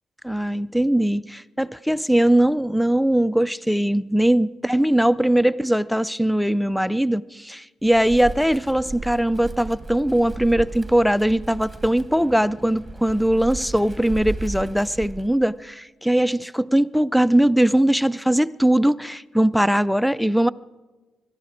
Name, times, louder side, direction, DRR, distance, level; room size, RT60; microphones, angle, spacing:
voice 1, 0.2-20.5, right 1 dB, ahead, 19 dB, 0.4 m, -20 dB
Wind, 7.8-15.6, right 3 dB, 20° right, 1.3 m, -35 dB
22.0 x 12.5 x 5.0 m, 1.2 s
cardioid pair, 90°, 0 cm